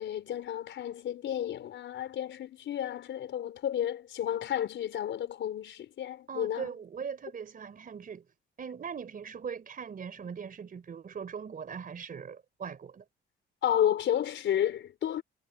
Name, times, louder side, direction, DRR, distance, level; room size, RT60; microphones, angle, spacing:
voice 1, 0.0-6.7 13.6-15.2, left 10 dB, 70° left, 4.7 m, -31 dB
voice 2, 6.3-8.2 8.6-13.0, right 6 dB, 45° right, 3.9 m, -40 dB
cardioid pair, 90°, 20 cm